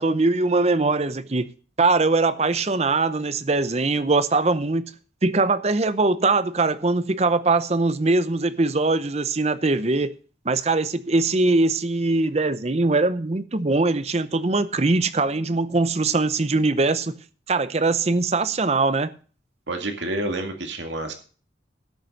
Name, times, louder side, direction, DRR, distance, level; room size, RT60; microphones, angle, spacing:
voice 1, 0.0-1.5 1.8-4.9 5.2-10.1 10.5-17.1 17.5-19.1, right 3 dB, 35° right, 0.6 m, -21 dB
voice 2, 19.7-21.1, right 1 dB, 75° right, 2.1 m, -28 dB
12.5 x 6.7 x 6.4 m
head